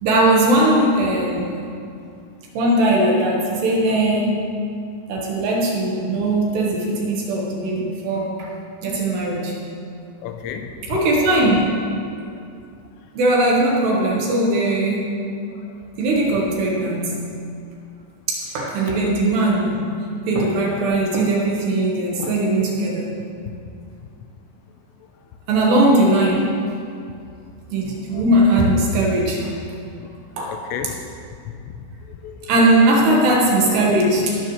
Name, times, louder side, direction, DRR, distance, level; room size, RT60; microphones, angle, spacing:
voice 1, 0.0-1.5 2.5-4.5 5.1-8.5 8.8-9.6 10.9-11.7 13.1-15.1 16.0-17.2 18.3-20.0 20.3-23.1 25.5-26.5 27.7-29.5 30.4-30.6 32.5-34.4, right 1 dB, 65° right, -2 dB, 3.2 m, -19 dB
voice 2, 10.2-11.0 12.3-12.4 18.9-19.0 22.1-22.3 28.1-28.2 30.0-30.1 30.5-31.0 31.7-32.5, left 8 dB, 90° left, 6 dB, 3.3 m, -33 dB
18.0 x 12.0 x 3.2 m, 2.4 s
omnidirectional pair, 5.8 m